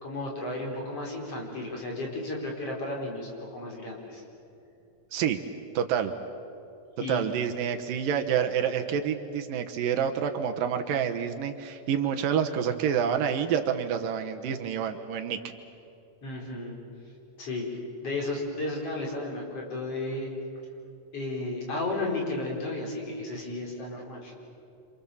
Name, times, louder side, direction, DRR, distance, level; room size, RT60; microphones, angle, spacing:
voice 1, 0.0-4.2 7.0-7.2 16.2-16.8 17.4-20.3 21.1-24.3, left 2 dB, 40° left, -1 dB, 5.6 m, -33 dB
voice 2, 5.1-5.4 5.7-6.1 7.1-15.4, right 8 dB, 75° right, 5 dB, 2.7 m, -28 dB
28.5 x 27.5 x 7.3 m, 2.7 s
omnidirectional pair, 4.2 m